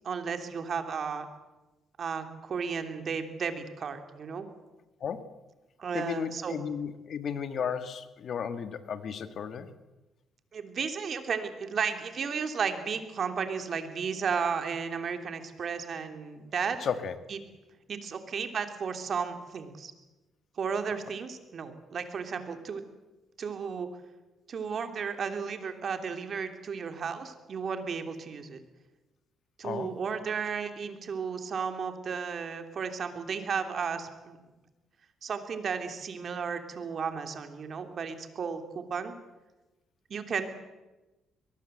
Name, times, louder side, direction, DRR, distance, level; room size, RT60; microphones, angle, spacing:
voice 1, 0.0-1.3 2.0-4.5 5.8-6.5 10.5-16.8 17.3-17.4 17.9-19.9 20.6-22.8 23.4-23.9 24.5-28.6 29.6-34.4 35.2-39.1 40.1-40.5, right 6 dB, 50° right, 7 dB, 3.1 m, -34 dB
voice 2, 5.0-5.3 5.9-9.7 16.8-17.2 29.6-29.9, left 7 dB, 60° left, 11 dB, 1.7 m, -34 dB
22.5 x 20.0 x 7.9 m, 1.1 s
cardioid pair, 90°, 0 cm